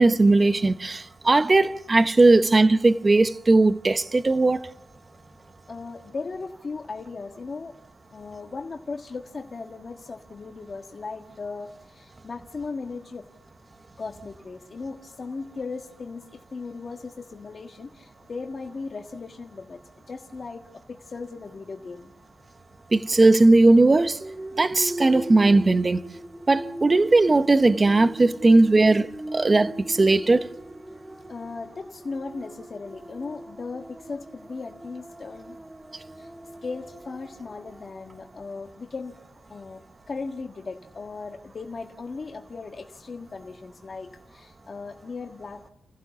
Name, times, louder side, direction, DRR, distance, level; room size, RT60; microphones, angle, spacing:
voice 1, 0.0-4.7 22.9-24.2 24.6-26.0 26.5-29.1 29.3-30.5, right 2 dB, 30° right, 1.0 m, -18 dB
voice 2, 5.7-7.8 8.1-13.2 14.0-19.8 20.1-20.6 20.9-22.1 31.3-35.6 36.2-36.3 36.6-39.1 39.5-39.8 40.1-45.7, left 4 dB, 45° left, 1.5 m, -37 dB
sound 1, 24.2-38.4, right 1 dB, 10° right, 2.4 m, -40 dB
29.5 x 15.0 x 7.1 m
cardioid pair, 100°, 0 cm